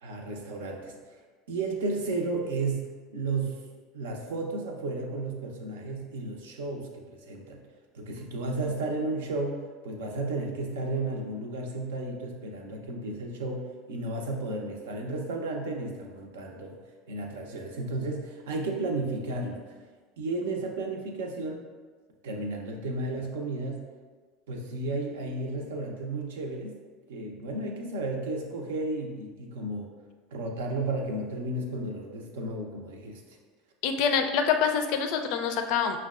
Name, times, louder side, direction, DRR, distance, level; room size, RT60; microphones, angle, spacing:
voice 1, 0.0-1.2 1.5-3.6 3.9-7.6 7.9-16.8 17.1-19.6 20.2-21.6 22.2-23.8 24.5-26.8 27.1-29.9 30.3-33.4, right 2 dB, 80° right, 2 dB, 0.5 m, -33 dB
voice 2, 33.8-36.0, left 7 dB, 65° left, 6 dB, 0.4 m, -26 dB
5.7 x 2.2 x 2.4 m, 1.4 s
hypercardioid pair, 80°, 0 cm